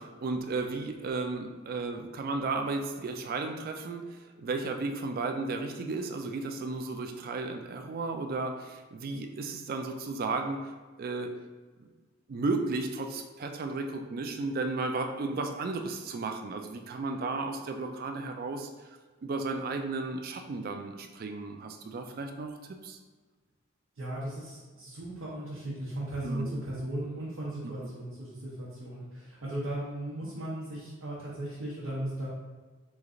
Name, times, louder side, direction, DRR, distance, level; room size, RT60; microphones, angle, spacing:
voice 1, 0.0-10.6 11.0-11.3 12.3-22.6 22.8-23.0 26.2-26.4, right 3 dB, 45° right, 5 dB, 0.3 m, -34 dB
voice 2, 24.0-32.3, right 1 dB, 85° right, -7 dB, 0.8 m, -37 dB
3.1 x 2.4 x 3.7 m, 1.4 s
head